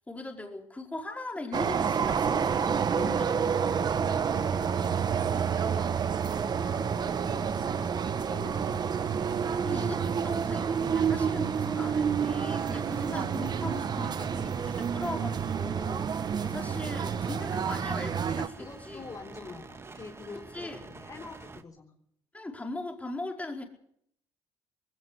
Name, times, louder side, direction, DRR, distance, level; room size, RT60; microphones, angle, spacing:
voice 1, 0.0-3.3 9.6-19.1 20.5-20.8 22.3-23.7, left 2 dB, 15° left, 2 dB, 4.8 m, -39 dB
sound 1, 1.5-18.5, right 7 dB, 45° right, 1.2 m, -29 dB
sound 2, 1.7-21.6, right 3 dB, 25° right, 1.8 m, -49 dB
voice 2, 2.9-7.9 8.3-9.1 18.6-21.9, left 4 dB, 35° left, 3 dB, 3.9 m, -46 dB
20.5 x 17.0 x 8.3 m, 0.69 s
cardioid pair, 95°, 10 cm